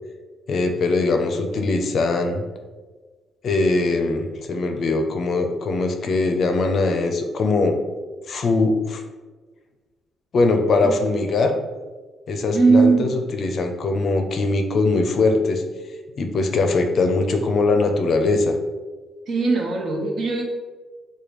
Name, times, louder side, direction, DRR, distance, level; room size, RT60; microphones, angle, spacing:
voice 1, 0.5-2.4 3.4-7.7 8.3-9.0 10.3-11.5 12.3-15.6 16.2-18.5, left 3 dB, 55° left, 5 dB, 0.5 m, -21 dB
voice 2, 12.5-13.1 19.3-20.4, right 4 dB, 60° right, 0 dB, 0.8 m, -19 dB
4.9 x 2.2 x 3.0 m, 1.3 s
cardioid pair, 110°, 0 cm